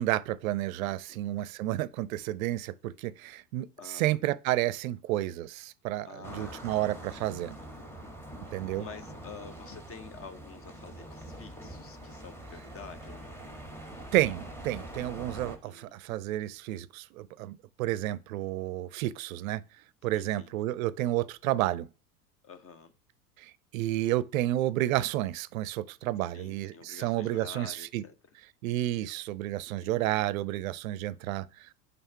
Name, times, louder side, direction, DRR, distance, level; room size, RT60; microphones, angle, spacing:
voice 1, 0.0-7.6 8.5-8.9 14.1-19.6 20.0-21.9 23.4-28.0 28.6-31.7, right 15 dB, 60° right, 0.5 m, -31 dB
voice 2, 0.8-1.3 3.8-4.2 6.0-7.8 8.5-13.5 15.4-16.0 20.1-20.5 22.4-22.9 26.3-28.1 29.6-30.1, left 5 dB, 30° left, 0.9 m, -49 dB
sound 1, 6.2-15.6, right 1 dB, 5° left, 1.6 m, -44 dB
5.6 x 3.9 x 5.6 m
hypercardioid pair, 80°, 48 cm